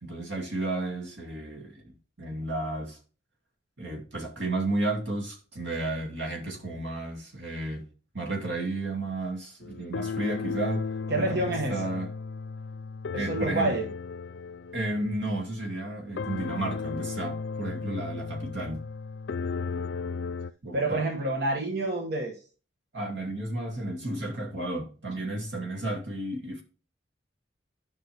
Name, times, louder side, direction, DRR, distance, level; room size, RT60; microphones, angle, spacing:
voice 1, 0.0-3.0 3.8-7.8 8.1-10.8 11.1-12.1 13.2-13.7 14.7-18.8 20.6-21.1 22.9-26.6, right 2 dB, 90° right, 2.3 m, -32 dB
sound 1, 9.6-15.8 16.2-20.5, left 5 dB, 70° left, 0.4 m, -35 dB
voice 2, 11.1-12.0 13.1-13.9 20.7-22.4, right 2 dB, 60° right, 1.1 m, -28 dB
10.5 x 5.4 x 3.3 m
head